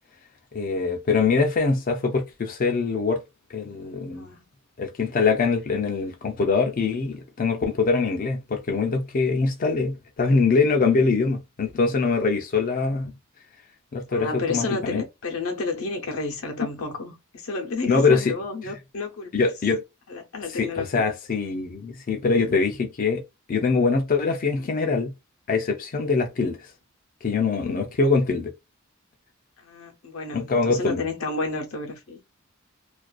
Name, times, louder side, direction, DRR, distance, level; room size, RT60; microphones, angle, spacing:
voice 1, 0.5-3.2 3.5-4.3 4.8-13.1 13.9-15.0 17.9-18.3 18.6-18.7 19.3-19.8 20.5-23.2 23.5-25.1 25.5-26.6 27.2-28.5 30.3-31.0, left 4 dB, 45° left, 0.4 m, -23 dB
voice 2, 4.0-4.5 14.1-19.3 20.1-21.1 29.6-32.2, left 3 dB, 90° left, 0.7 m, -31 dB
2.4 x 2.2 x 2.3 m
head